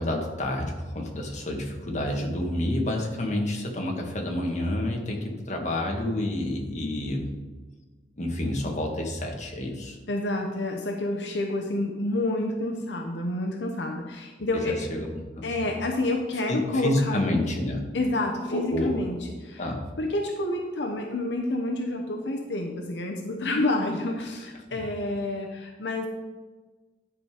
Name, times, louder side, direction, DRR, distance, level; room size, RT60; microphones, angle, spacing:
voice 1, 0.0-7.4 8.2-10.0 14.5-15.7 16.5-17.8 18.5-19.0 19.6-19.8 24.7-24.8, left 1 dB, 40° left, 1 dB, 1.5 m, -29 dB
voice 2, 10.1-14.9 15.4-17.4 17.9-19.7 20.0-26.1, left 2 dB, 75° left, 2 dB, 0.8 m, -29 dB
10.5 x 5.1 x 4.9 m, 1.3 s
head